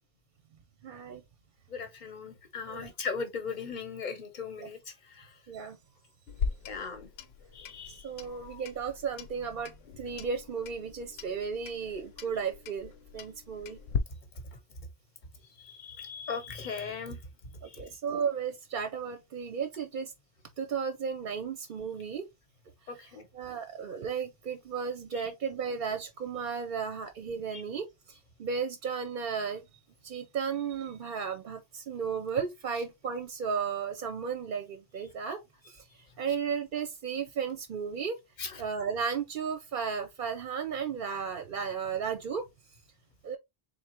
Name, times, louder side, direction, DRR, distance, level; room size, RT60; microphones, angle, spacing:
voice 1, 0.8-1.2 2.7-2.9 4.6-4.7 5.5-5.8 8.0-13.8 17.8-20.1 20.6-22.2 23.0-23.1 23.3-29.6 30.0-35.4 35.7-38.2 38.6-42.4 43.2-43.4, right 6 dB, 55° right, 0.7 m, -34 dB
voice 2, 1.7-5.3 6.7-7.1 7.5-8.6 15.6-17.2 17.6-17.8 22.9-23.2 25.1-25.3 27.5-27.6 38.4-38.6, left 5 dB, 45° left, 1.0 m, -39 dB
Clock, 6.3-14.0, left 6 dB, 70° left, 0.8 m, -39 dB
4.0 x 3.4 x 2.9 m
omnidirectional pair, 1.1 m